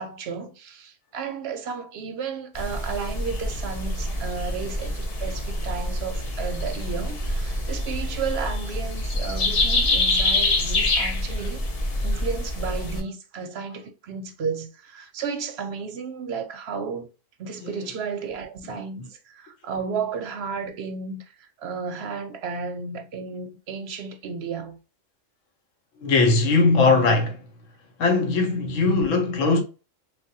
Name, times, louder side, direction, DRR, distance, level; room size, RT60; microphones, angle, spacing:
voice 1, 0.0-11.7 12.0-17.1 17.4-24.8, right 5 dB, 65° right, 0.7 m, -33 dB
sound 1, 2.6-13.0, left 2 dB, 45° left, 0.5 m, -26 dB
voice 2, 26.0-27.4 28.0-29.6, left 3 dB, 85° left, 1.1 m, -20 dB
3.4 x 2.3 x 2.6 m
omnidirectional pair, 1.3 m